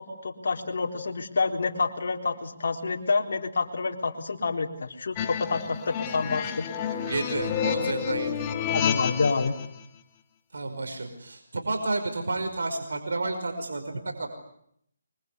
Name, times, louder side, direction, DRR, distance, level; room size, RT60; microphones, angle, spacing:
voice 1, 0.0-6.7 8.7-9.6, left 4 dB, 65° left, 2 dB, 4.0 m, -28 dB
sound 1, 5.2-9.7, left 9 dB, 25° left, 2.2 m, -30 dB
voice 2, 6.9-8.5 10.5-14.3, right 2 dB, 75° right, 5 dB, 5.3 m, -31 dB
25.0 x 24.0 x 8.4 m, 0.71 s
hypercardioid pair, 160°, 0 cm